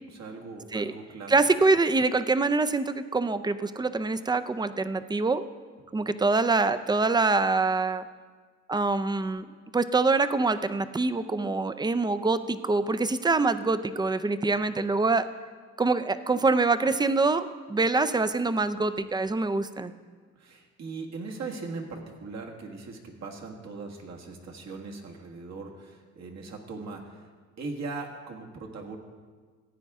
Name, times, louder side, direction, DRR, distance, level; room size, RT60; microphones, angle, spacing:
voice 1, 0.1-1.3 5.9-6.1 20.4-27.3 27.6-29.0, right 3 dB, 60° right, 1 dB, 1.7 m, -39 dB
voice 2, 1.3-5.5 5.9-8.0 8.7-9.5 9.7-15.3 15.8-19.9, right 3 dB, 15° right, 12 dB, 0.5 m, -25 dB
15.5 x 9.1 x 3.6 m, 1.5 s
cardioid pair, 90°, 30 cm